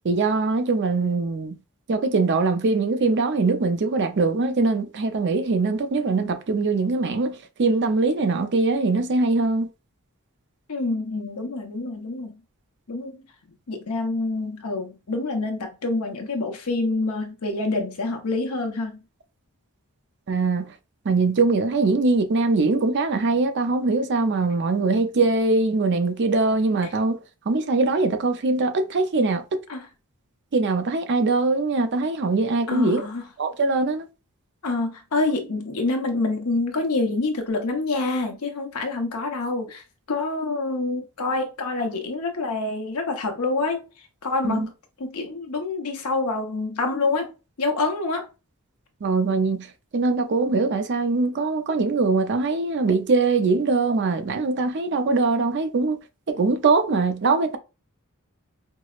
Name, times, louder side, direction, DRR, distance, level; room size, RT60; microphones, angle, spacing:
voice 1, 0.0-1.5 1.9-9.7 20.3-20.6 21.1-27.2 27.5-29.4 30.5-33.1 33.4-34.1 44.4-44.7 49.0-49.7 49.9-56.0 56.3-57.6, right 3 dB, 55° right, 0.5 m, -22 dB
voice 2, 10.7-12.4 12.9-13.2 13.7-19.0 26.8-26.9 29.7-29.9 32.7-33.3 34.6-39.8 40.1-43.8 44.2-44.6 45.0-47.3 47.6-48.3, left 3 dB, 85° left, 0.8 m, -27 dB
4.6 x 2.0 x 2.4 m
head